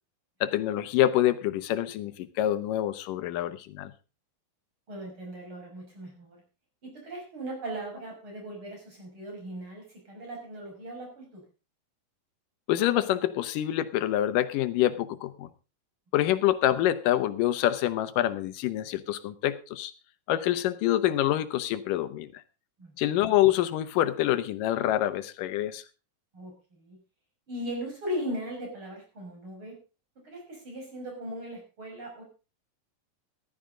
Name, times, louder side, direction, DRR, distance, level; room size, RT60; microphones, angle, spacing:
voice 1, 0.4-3.9 12.7-15.5 16.1-19.9 20.3-22.4 23.0-25.8, left 13 dB, 80° left, 2.4 m, -26 dB
voice 2, 4.9-6.4 7.0-11.4 22.8-22.9 26.3-27.0 27.5-29.8 30.2-32.2, equal, 35° right, 6.7 m, -38 dB
14.5 x 12.5 x 3.8 m
omnidirectional pair, 3.9 m